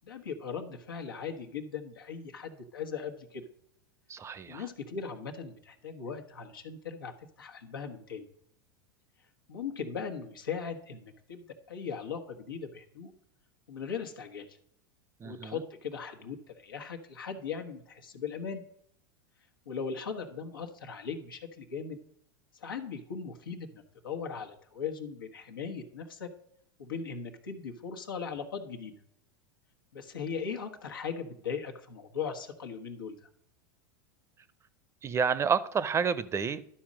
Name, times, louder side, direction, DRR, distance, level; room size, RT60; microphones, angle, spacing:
voice 1, 0.0-3.4 4.5-8.3 9.5-13.1 13.7-14.6 15.2-18.6 19.7-22.0 22.5-26.3 26.8-29.0 29.9-33.3, left 6 dB, 90° left, 1.3 m, -39 dB
voice 2, 4.1-4.6 15.2-15.6 35.0-36.6, right 6 dB, 25° right, 0.6 m, -29 dB
11.5 x 4.3 x 6.2 m
hypercardioid pair, 95°, 11 cm